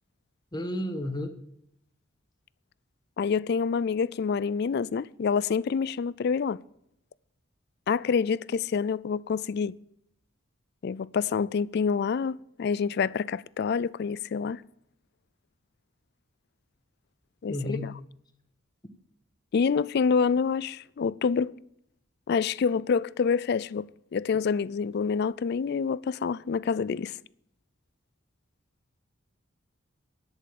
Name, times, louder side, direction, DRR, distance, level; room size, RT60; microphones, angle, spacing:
voice 1, 0.5-1.4 17.5-17.9, left 1 dB, 20° left, 1.2 m, -32 dB
voice 2, 3.2-6.6 7.9-9.7 10.8-14.6 17.4-17.9 19.5-21.5 22.3-27.2, left 5 dB, 55° left, 0.4 m, -27 dB
10.5 x 8.5 x 7.4 m
head